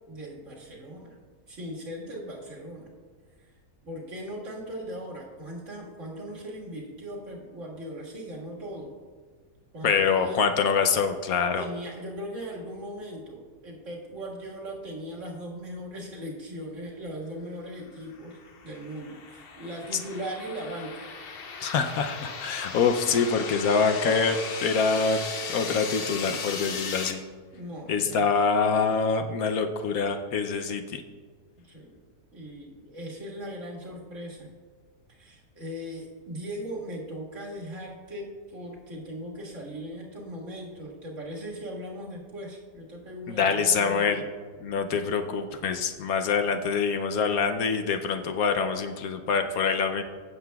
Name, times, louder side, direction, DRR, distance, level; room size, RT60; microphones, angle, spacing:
voice 1, 0.1-1.2 1.5-2.9 3.4-3.5 3.8-8.9 9.7-10.5 11.6-18.4 18.6-21.1 27.5-28.3 31.6-31.9 32.3-34.5 35.1-44.3, equal, 50° right, -3 dB, 2.1 m, -39 dB
voice 2, 9.8-11.7 21.6-25.2 25.5-27.2 27.9-31.0 43.3-44.2 44.6-50.0, left 5 dB, 70° left, 6 dB, 1.0 m, -25 dB
sound 1, 18.1-27.1, left 5 dB, 50° left, 0.7 m, -37 dB
16.0 x 7.7 x 2.3 m, 1.5 s
omnidirectional pair, 1.7 m